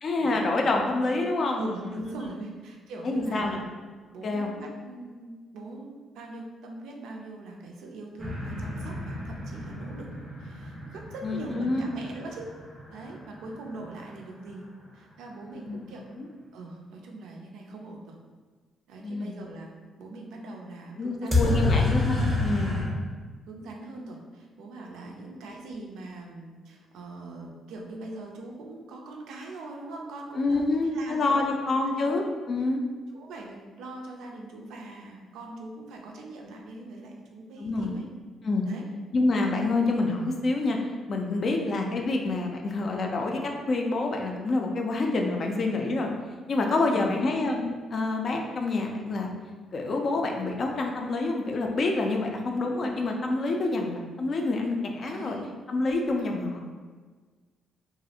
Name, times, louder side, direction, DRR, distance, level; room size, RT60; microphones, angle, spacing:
voice 1, 0.0-1.6 1.8-2.1 3.0-3.6 4.2-4.5 11.2-11.9 15.4-15.8 16.2-16.3 19.0-19.4 21.0-22.8 30.4-32.8 37.6-37.9 38.4-38.6 39.1-40.8 41.1-46.1 46.5-49.3 49.7-53.9 54.2-55.4 55.7-56.6, left 2 dB, 50° left, 2 dB, 0.4 m, -27 dB
voice 2, 1.5-3.6 4.1-12.5 12.9-14.6 14.9-16.1 16.5-18.2 18.9-19.7 20.0-21.6 22.8-22.9 23.5-31.6 31.9-32.1 33.1-38.1 38.6-38.9 46.9-47.2 55.0-55.5 56.2-56.3, right 2 dB, 85° right, 0 dB, 0.4 m, -41 dB
Designed cinematic drone - winter strike, 8.2-13.9 21.3-22.9, left 2 dB, 15° right, 0.6 m, -29 dB
2.4 x 2.0 x 2.7 m, 1.4 s
cardioid pair, 90°, 0 cm